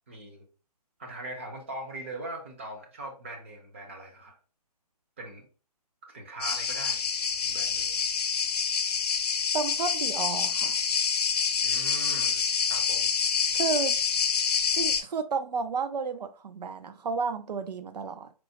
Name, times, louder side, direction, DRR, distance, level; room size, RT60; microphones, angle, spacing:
voice 1, 0.1-0.4 1.0-4.4 5.2-5.5 6.0-7.0 7.4-7.9 11.6-13.1, right 2 dB, 20° right, 2 dB, 0.5 m, -41 dB
sound 1, 6.4-15.0, left 6 dB, 75° left, 0.6 m, -27 dB
voice 2, 9.5-10.8 13.5-14.0 14.7-18.3, right 5 dB, 80° right, 10 dB, 0.6 m, -31 dB
4.3 x 2.1 x 2.7 m, 0.35 s
hypercardioid pair, 165°, 21 cm